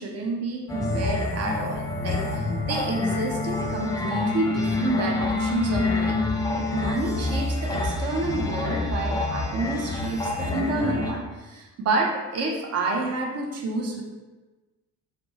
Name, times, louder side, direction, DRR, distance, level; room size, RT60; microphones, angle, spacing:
voice 1, 0.0-14.0, right 2 dB, 30° right, 1 dB, 0.9 m, -29 dB
sound 1, 0.7-11.1, left 2 dB, 10° left, 0.3 m, -27 dB
6.0 x 2.6 x 3.0 m, 1.2 s
figure-of-eight pair, 55°, 47 cm